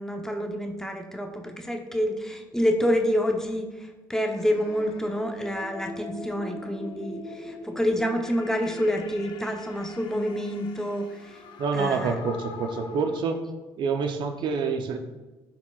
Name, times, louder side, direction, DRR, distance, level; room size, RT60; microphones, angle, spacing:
voice 1, 0.0-11.4 11.7-12.1, equal, 5° left, 3 dB, 0.9 m, -28 dB
sound 1, 4.3-13.2, left 3 dB, 65° left, 0.8 m, -42 dB
voice 2, 11.6-13.4 13.8-15.0, right 5 dB, 65° right, 5 dB, 0.7 m, -27 dB
10.5 x 4.7 x 2.4 m, 1.1 s
supercardioid pair, 75°, 9 cm